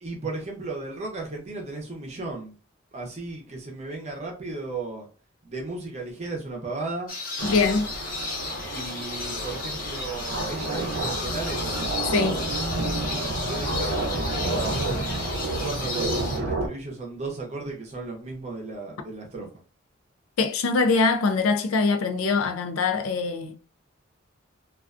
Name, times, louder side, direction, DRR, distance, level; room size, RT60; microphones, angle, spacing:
voice 1, 0.0-2.5 2.9-5.1 5.4-7.1 8.7-11.7 13.1-15.2 15.6-19.5, right 3 dB, 30° right, 0.6 m, -35 dB
sound 1, 7.1-16.4, left 3 dB, 40° left, 0.7 m, -34 dB
voice 2, 7.4-7.9 12.1-12.4 20.4-23.6, left 4 dB, 80° left, 0.4 m, -23 dB
sound 2, 7.4-16.7, right 2 dB, 85° right, 0.6 m, -30 dB
2.4 x 2.2 x 2.4 m
head